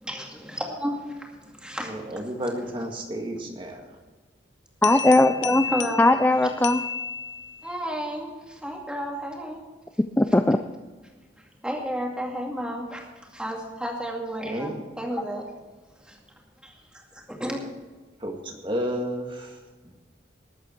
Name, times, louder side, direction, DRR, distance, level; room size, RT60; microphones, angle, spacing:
voice 1, 0.0-2.1 5.0-5.3 5.6-6.0 6.4-6.5 7.6-9.6 11.4-15.4 16.0-16.2 16.6-17.6, equal, 5° right, 0 dB, 2.3 m, -33 dB
voice 2, 1.8-3.8 14.4-14.8 18.2-19.6, equal, 25° right, 2 dB, 1.9 m, -31 dB
sound 1, 4.8-7.8, left 7 dB, 70° left, 0.7 m, -33 dB
voice 3, 4.8-5.7 6.0-6.8 10.2-10.6, left 2 dB, 10° left, 7 dB, 0.4 m, -19 dB
20.0 x 8.4 x 4.6 m, 1.3 s
head